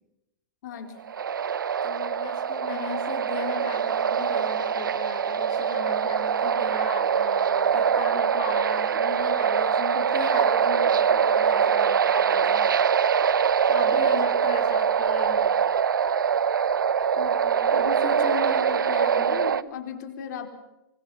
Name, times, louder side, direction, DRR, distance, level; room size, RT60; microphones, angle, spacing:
voice 1, 0.6-1.0 17.2-20.5, left 7 dB, 60° left, 6 dB, 4.3 m, -36 dB
sound 1, 1.1-19.6, right 7 dB, 85° right, 0.9 m, -23 dB
voice 2, 1.8-12.7 13.7-15.4 17.8-17.9, left 8 dB, 45° left, 2 dB, 3.6 m, -38 dB
27.0 x 24.0 x 5.8 m, 0.92 s
hypercardioid pair, 120°, 11 cm